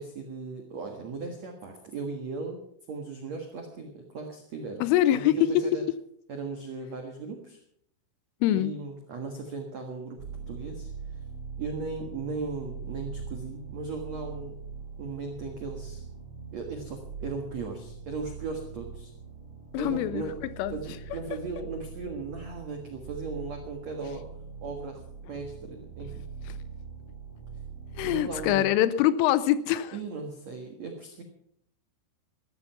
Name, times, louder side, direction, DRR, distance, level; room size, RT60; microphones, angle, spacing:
voice 1, 0.0-2.6 2.9-4.9 5.1-5.8 6.3-7.6 8.5-10.9 11.6-14.6 15.0-16.0 16.5-19.1 19.8-20.4 20.7-24.3 24.6-25.0 25.3-26.2 28.0-28.7 29.9-31.2, right 4 dB, 80° right, 3 dB, 1.5 m, -37 dB
voice 2, 4.8-5.6 8.4-8.7 19.7-20.2 20.6-20.7 26.5-26.6 28.0-30.0, left 12 dB, 80° left, 15 dB, 3.1 m, -24 dB
sound 1, 10.2-28.6, right 5 dB, 30° right, 4.8 m, -42 dB
15.0 x 13.5 x 5.8 m, 0.69 s
omnidirectional pair, 5.9 m